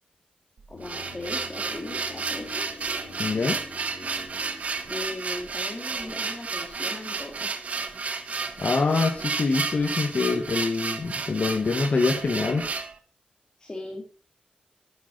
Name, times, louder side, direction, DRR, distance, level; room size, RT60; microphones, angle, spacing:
sound 1, 0.6-12.9, right 4 dB, 60° right, 1.1 m, -32 dB
sound 2, 0.7-6.7 7.0-7.1, left 3 dB, 85° left, 3.1 m, -46 dB
voice 1, 0.7-2.6 4.9-7.5 13.6-14.1, left 2 dB, 25° left, -2 dB, 2.2 m, -38 dB
voice 2, 3.2-3.6 8.6-12.6, left 4 dB, 55° left, 2 dB, 1.7 m, -25 dB
10.0 x 7.9 x 4.1 m, 0.35 s
wide cardioid pair, 95°, 3 cm